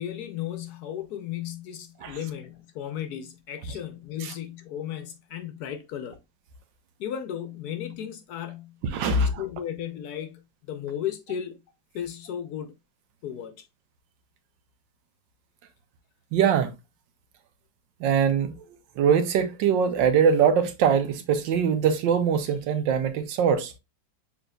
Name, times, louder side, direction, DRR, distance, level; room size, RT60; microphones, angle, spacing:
voice 1, 0.0-6.2 7.0-8.8 9.1-11.6 11.9-12.7 13.2-13.7, left 10 dB, 70° left, 1.0 m, -35 dB
voice 2, 8.9-9.3 16.3-16.7 18.0-18.5 19.0-23.7, right 7 dB, 80° right, 1.5 m, -22 dB
5.8 x 3.9 x 2.2 m
omnidirectional pair, 2.0 m